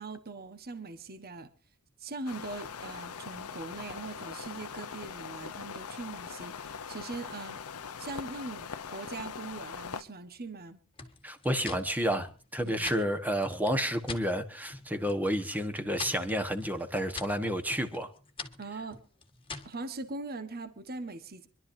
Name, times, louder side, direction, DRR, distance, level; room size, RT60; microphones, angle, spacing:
voice 1, 0.0-1.5 2.0-7.6 8.0-10.8 12.6-12.9 18.6-19.0 19.6-21.5, right 3 dB, 45° right, 1.3 m, -41 dB
sound 1, 2.3-10.0, left 6 dB, 75° left, 0.8 m, -41 dB
sound 2, 11.0-14.3 14.7-15.2 15.5-19.8, left 4 dB, 25° left, 1.7 m, -44 dB
voice 2, 11.2-18.1, equal, 10° right, 1.3 m, -30 dB
26.0 x 12.0 x 2.7 m
head